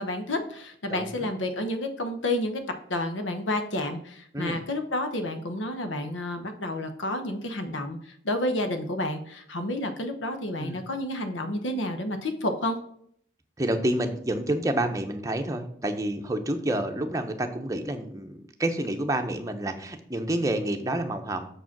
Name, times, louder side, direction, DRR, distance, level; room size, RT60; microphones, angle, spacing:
voice 1, 0.0-2.6 2.9-12.8, left 1 dB, 90° left, 7 dB, 1.0 m, -30 dB
voice 2, 0.9-1.3 4.3-4.6 10.6-10.8 13.6-21.5, right 1 dB, 20° right, 5 dB, 0.7 m, -29 dB
6.7 x 5.0 x 5.9 m, 0.65 s
head